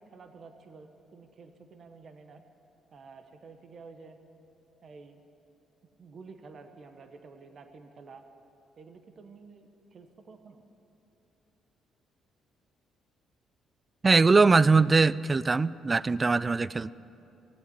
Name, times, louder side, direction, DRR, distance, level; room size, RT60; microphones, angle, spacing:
voice 1, 0.1-2.4 2.9-4.2 4.8-5.2 6.0-8.3 8.8-10.6, right 4 dB, 50° right, 7 dB, 1.0 m, -50 dB
voice 2, 14.0-16.9, right 4 dB, 30° right, 19 dB, 0.3 m, -22 dB
16.0 x 8.3 x 9.2 m, 2.9 s
cardioid pair, 85°, 0 cm